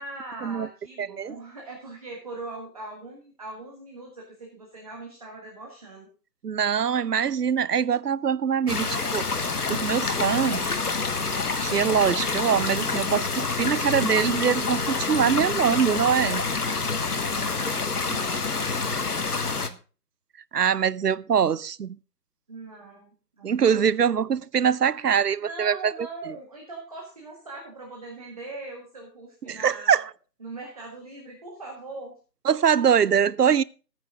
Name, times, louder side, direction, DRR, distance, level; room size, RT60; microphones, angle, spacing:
voice 1, 0.0-6.1 17.4-19.8 22.5-23.1 23.4-23.9 25.4-30.0 30.4-32.2, right 2 dB, 20° right, 1.8 m, -41 dB
voice 2, 1.0-1.3 6.4-9.3 9.7-10.7 11.6-16.5 20.5-22.0 23.4-25.9 26.3-26.4 29.5-30.1 32.4-33.6, right 7 dB, 70° right, 0.6 m, -23 dB
sound 1, 8.7-19.7, left 4 dB, 65° left, 1.4 m, -27 dB
12.5 x 9.4 x 3.7 m
figure-of-eight pair, 165°, 49 cm